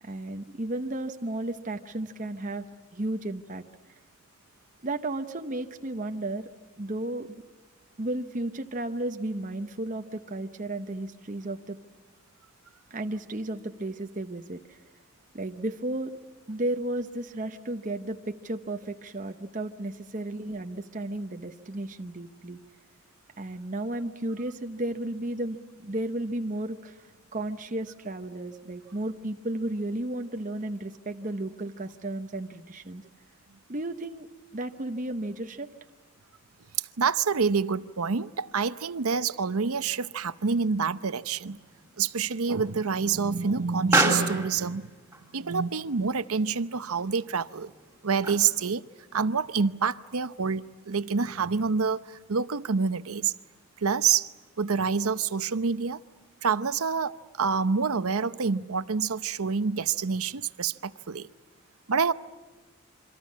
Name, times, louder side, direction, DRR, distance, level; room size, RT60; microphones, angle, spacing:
voice 1, 0.0-2.7 2.9-4.0 4.8-6.5 6.8-7.4 8.0-11.8 12.9-14.8 15.3-16.1 16.5-22.6 23.4-33.1 33.7-34.3 34.5-35.7, right 1 dB, 35° right, 0.9 m, -33 dB
voice 2, 37.0-41.6 42.0-44.9 45.3-47.7 48.0-48.8 49.1-53.3 53.8-54.3 54.6-56.0 56.4-61.3 61.9-62.1, right 5 dB, 90° right, 0.8 m, -27 dB
Explosion, 39.8-48.7, right 2 dB, 10° right, 3.0 m, -33 dB
27.0 x 25.0 x 7.4 m
head